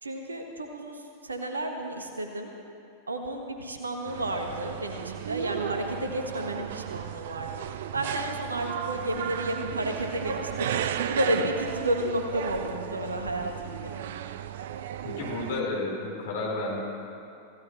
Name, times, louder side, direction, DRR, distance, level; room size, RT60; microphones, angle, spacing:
voice 1, 0.0-2.5 3.1-7.5 7.9-10.7 11.1-14.0, right 1 dB, 75° right, 4 dB, 1.7 m, -31 dB
sound 1, 4.1-15.6, right 10 dB, 55° right, 0.6 m, -34 dB
voice 2, 15.0-16.8, left 2 dB, 60° left, -2 dB, 4.4 m, -31 dB
26.0 x 16.0 x 3.3 m, 2.8 s
figure-of-eight pair, 90°, 0 cm